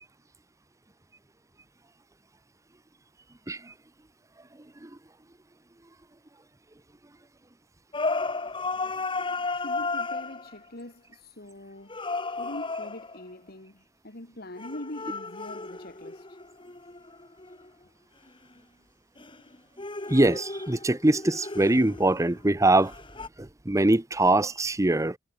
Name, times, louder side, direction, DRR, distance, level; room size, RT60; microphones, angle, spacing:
sound 1, 7.9-10.6 11.9-13.2 14.6-17.7 19.2-22.4 22.8-23.3, left 3 dB, 25° left, 2.5 m, -34 dB
voice 1, 9.5-12.0 12.4-16.4, left 1 dB, 55° left, 3.1 m, -43 dB
voice 2, 20.1-22.9 23.7-25.2, right 2 dB, 15° right, 0.8 m, -22 dB
head